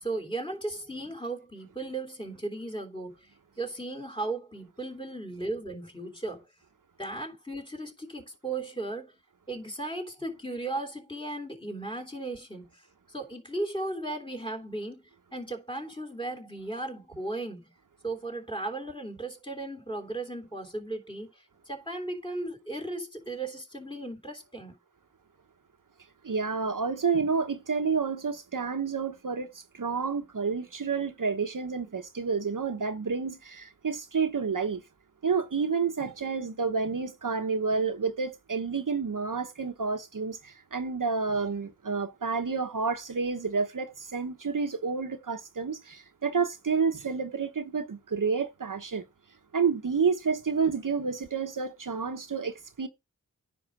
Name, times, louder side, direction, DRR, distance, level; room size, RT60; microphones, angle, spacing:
voice 1, 0.0-3.3 3.6-6.4 7.0-9.2 9.5-12.8 13.1-15.0 15.3-17.7 18.0-24.7, right 2 dB, 15° left, 3.2 m, -36 dB
voice 2, 26.2-34.8 35.2-49.0 49.5-52.9, right 5 dB, 65° right, 1.0 m, -29 dB
9.9 x 5.1 x 5.0 m
wide cardioid pair, 55°, 34 cm